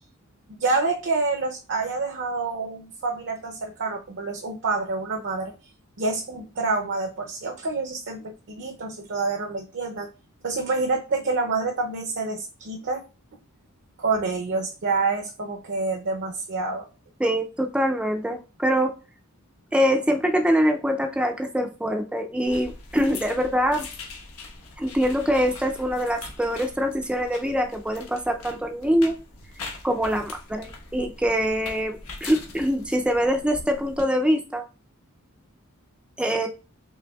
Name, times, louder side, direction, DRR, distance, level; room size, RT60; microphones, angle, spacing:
voice 1, 0.6-5.5 6.0-10.1 10.4-13.0 14.0-16.9, right 3 dB, 55° right, 3 dB, 0.5 m, -27 dB
voice 2, 17.2-18.9 19.7-23.9 24.8-29.2 29.8-34.6 36.2-36.5, equal, 5° right, 3 dB, 0.4 m, -24 dB
sound 1, 22.4-34.0, left 3 dB, 75° left, 1.1 m, -42 dB
5.1 x 3.4 x 2.3 m, 0.32 s
head